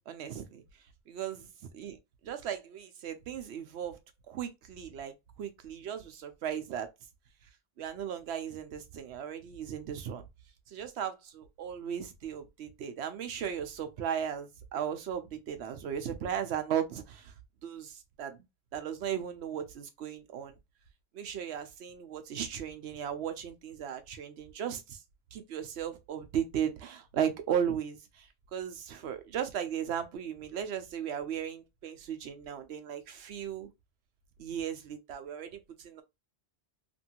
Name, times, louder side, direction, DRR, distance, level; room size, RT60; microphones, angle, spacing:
voice 1, 0.0-0.6 1.1-2.0 2.2-4.0 4.3-6.9 7.8-10.2 10.7-17.3 17.6-18.4 18.7-20.5 21.1-25.0 25.3-33.7 34.4-36.0, right 9 dB, 75° right, 0.9 m, -36 dB
2.9 x 2.6 x 2.8 m
omnidirectional pair, 1.1 m